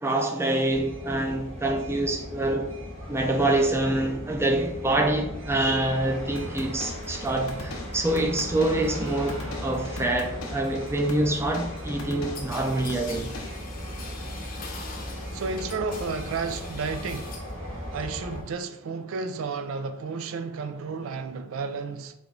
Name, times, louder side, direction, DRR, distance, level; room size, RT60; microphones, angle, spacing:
voice 1, 0.0-2.7 3.1-13.3, right 1 dB, 10° right, 0.4 m, -26 dB
sound 1, 0.7-18.4, equal, 70° right, 1.2 m, -37 dB
sound 2, 6.4-13.6, left 2 dB, 85° left, 0.6 m, -41 dB
sound 3, 12.3-17.6 17.9-18.5, left 4 dB, 45° left, 0.6 m, -43 dB
voice 2, 15.3-17.4 17.9-22.1, right 4 dB, 85° right, 0.4 m, -32 dB
3.3 x 2.9 x 3.8 m
head